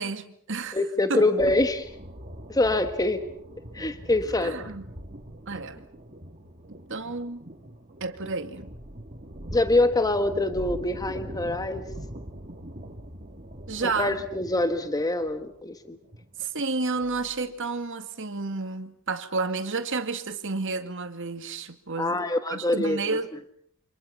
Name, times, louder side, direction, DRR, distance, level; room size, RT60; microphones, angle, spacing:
voice 1, 0.0-0.8 1.1-1.3 4.4-4.8 5.5-5.8 6.9-7.5 8.0-8.7 13.7-14.2 16.4-22.2 22.5-23.3, right 3 dB, 55° right, 2.2 m, -31 dB
voice 2, 0.7-1.9 2.5-3.3 3.7-4.7 9.5-11.8 13.8-16.0 22.0-23.0, left 2 dB, 15° left, 1.3 m, -25 dB
sound 1, 1.4-17.6, equal, 35° right, 3.0 m, -42 dB
29.0 x 26.0 x 5.8 m
head